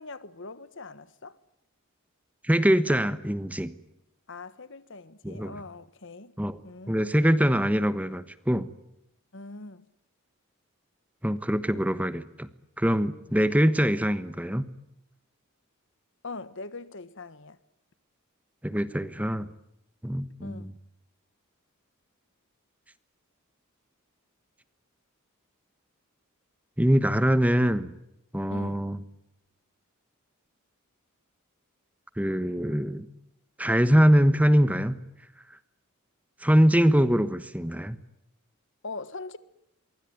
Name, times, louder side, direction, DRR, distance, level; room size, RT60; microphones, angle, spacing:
voice 1, 0.0-1.4 4.3-6.3 6.6-7.0 9.3-9.9 16.2-17.6 20.4-20.7 28.5-28.9 38.8-39.4, left 3 dB, 60° left, 1.4 m, -41 dB
voice 2, 2.4-3.7 5.2-5.6 6.4-6.6 6.9-8.7 11.2-12.5 12.8-14.7 18.6-19.5 20.0-20.7 26.8-27.9 28.3-29.0 32.2-33.1 33.6-35.0 36.4-38.0, equal, 5° right, 1.2 m, -23 dB
25.0 x 23.5 x 9.5 m
head